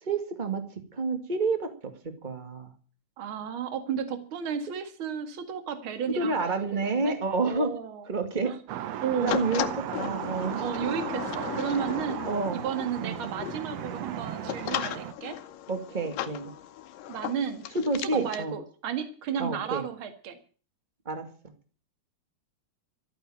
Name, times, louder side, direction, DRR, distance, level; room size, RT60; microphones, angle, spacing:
voice 1, 0.0-0.6 0.9-1.9 2.2-2.7 6.1-7.7 8.1-8.5 8.9-9.6 10.0-10.6 12.3-12.6 13.0-13.2 15.7-16.5 17.7-18.5 19.4-19.8 21.0-21.2, right 3 dB, 25° right, 7 dB, 1.1 m, -29 dB
voice 2, 3.2-7.2 7.5-8.1 8.4-8.6 9.0-9.4 10.5-12.2 12.5-15.4 17.1-17.7 18.0-20.4, right 7 dB, 45° right, 9 dB, 2.2 m, -33 dB
sound 1, 8.7-15.1, right 12 dB, 85° right, 1.4 m, -36 dB
sound 2, 9.3-18.4, left 12 dB, 75° left, 2.6 m, -36 dB
14.0 x 9.1 x 9.0 m, 0.41 s
omnidirectional pair, 4.1 m